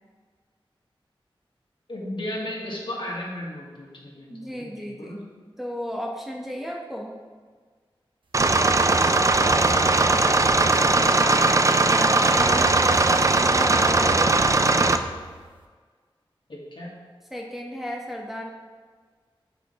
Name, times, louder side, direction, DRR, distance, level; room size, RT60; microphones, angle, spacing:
voice 1, 1.9-5.2 8.9-10.3 16.5-16.9, left 1 dB, 60° left, -3 dB, 1.9 m, -36 dB
voice 2, 4.3-5.2 5.6-7.1 11.3-15.0 17.3-18.5, equal, ahead, -1 dB, 0.9 m, -34 dB
sound 1, 8.3-15.0, right 3 dB, 35° right, 0.4 m, -19 dB
sound 2, 8.4-11.4 12.3-15.6, right 2 dB, 60° right, 0.9 m, -33 dB
6.0 x 5.8 x 4.1 m, 1.5 s
cardioid pair, 45°, 10 cm